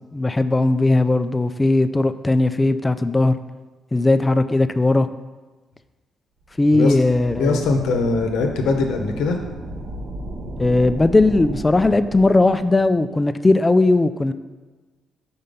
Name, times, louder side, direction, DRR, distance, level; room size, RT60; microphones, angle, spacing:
voice 1, 0.1-3.4 3.9-5.1 6.6-7.6 10.6-14.3, left 2 dB, 20° left, 11 dB, 0.3 m, -18 dB
sound 1, 6.5-13.0, right 1 dB, 50° right, 0.7 m, -35 dB
voice 2, 7.4-9.4, left 3 dB, 85° left, 4 dB, 0.8 m, -21 dB
5.6 x 4.3 x 5.2 m, 1.3 s
cardioid pair, 90°, 0 cm